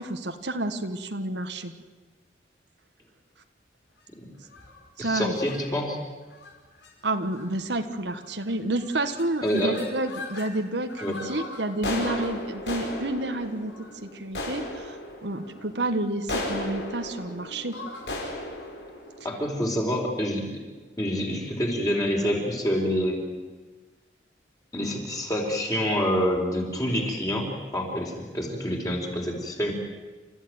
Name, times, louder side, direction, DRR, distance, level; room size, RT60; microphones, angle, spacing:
voice 1, 0.0-1.7 5.0-5.3 7.0-15.0 15.2-17.8, right 2 dB, 75° right, 7 dB, 1.6 m, -30 dB
sound 1, 4.4-4.8 5.4-5.6 6.3-6.5 6.8-6.9 7.2-7.6 8.2-8.5 8.8-10.5 10.9-20.1, left 1 dB, 80° left, 5.3 m, -36 dB
voice 2, 5.0-6.0 9.4-9.8 11.0-11.1 19.2-20.4 21.0-23.2 24.7-29.7, equal, 20° left, 0 dB, 4.5 m, -27 dB
29.5 x 14.5 x 9.6 m, 1.3 s
head